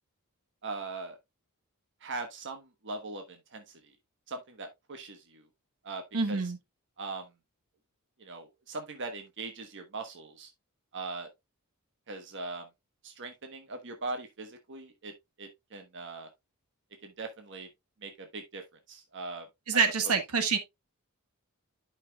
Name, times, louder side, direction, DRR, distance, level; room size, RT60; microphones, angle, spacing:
voice 1, 0.6-1.2 2.0-3.6 4.3-5.4 5.8-6.4 7.0-7.3 8.2-10.5 10.9-11.3 12.1-12.7 13.0-15.1 15.4-16.3 17.0-17.7 18.0-18.6 18.9-19.5 19.7-20.1, right 3 dB, 55° right, 1.1 m, -40 dB
voice 2, 6.1-6.6 19.7-20.6, right 5 dB, 80° right, 1.4 m, -26 dB
11.0 x 5.7 x 2.3 m
head